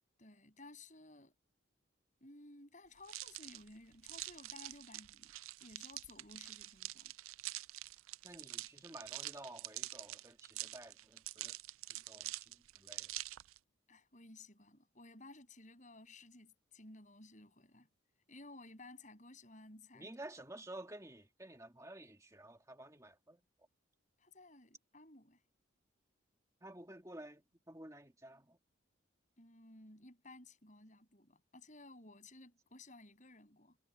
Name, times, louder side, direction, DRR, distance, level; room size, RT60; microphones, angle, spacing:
voice 1, 0.2-1.3 2.2-7.1 13.9-17.9 18.3-20.1 24.2-25.4 29.4-33.8, left 2 dB, 40° left, 7.4 m, -57 dB
sound 1, 3.0-13.6, right 17 dB, 90° right, 0.4 m, -46 dB
voice 2, 8.2-11.6 11.9-13.1 19.9-23.4 26.6-28.6, right 1 dB, 15° right, 2.0 m, -52 dB
head